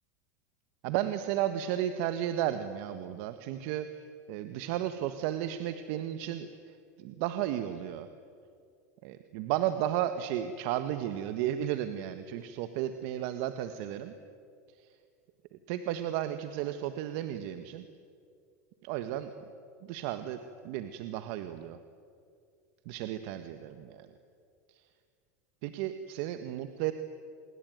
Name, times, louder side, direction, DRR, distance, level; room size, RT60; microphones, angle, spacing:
voice 1, 0.8-3.9 4.3-8.1 9.0-14.1 15.7-17.8 18.8-19.3 19.9-20.4 20.6-21.8 22.8-24.1 25.6-26.9, right 11 dB, 65° right, 9 dB, 1.4 m, -33 dB
28.5 x 21.0 x 9.3 m, 2.3 s
supercardioid pair, 115°, 9 cm